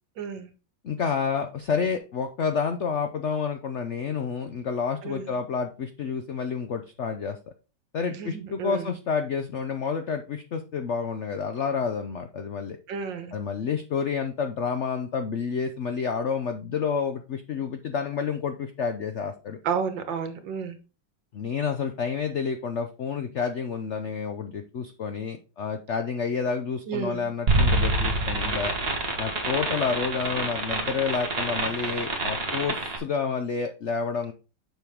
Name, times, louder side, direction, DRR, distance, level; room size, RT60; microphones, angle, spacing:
voice 1, 0.2-0.5 5.0-5.4 8.1-8.9 12.9-13.4 19.6-20.8 26.9-27.3, right 6 dB, 80° right, 9 dB, 1.8 m, -32 dB
voice 2, 0.8-7.4 7.9-12.8 13.3-19.6 21.3-28.7 29.2-34.3, left 6 dB, 60° left, 7 dB, 0.8 m, -29 dB
sound 1, 27.5-33.0, right 2 dB, 35° right, 1.6 m, -26 dB
7.2 x 5.8 x 3.6 m, 0.32 s
omnidirectional pair, 2.0 m